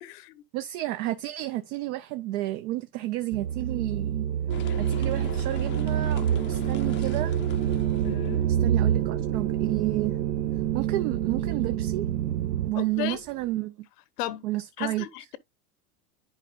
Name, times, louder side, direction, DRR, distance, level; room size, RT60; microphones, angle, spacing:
voice 1, 0.0-0.4 8.0-8.5 12.7-13.2 14.2-14.4 14.8-15.4, left 13 dB, 70° left, 0.9 m, -35 dB
voice 2, 0.5-4.3 4.8-7.4 8.6-10.2 10.7-12.1 12.7-13.7 14.4-15.1, right 16 dB, 60° right, 0.7 m, -31 dB
sound 1, 3.3-12.7, right 10 dB, 90° right, 0.9 m, -27 dB
sound 2, 4.5-8.5, left 12 dB, 25° left, 0.5 m, -43 dB
sound 3, 4.5-13.6, right 8 dB, 35° right, 1.0 m, -39 dB
10.5 x 4.4 x 2.4 m
supercardioid pair, 130°, 48 cm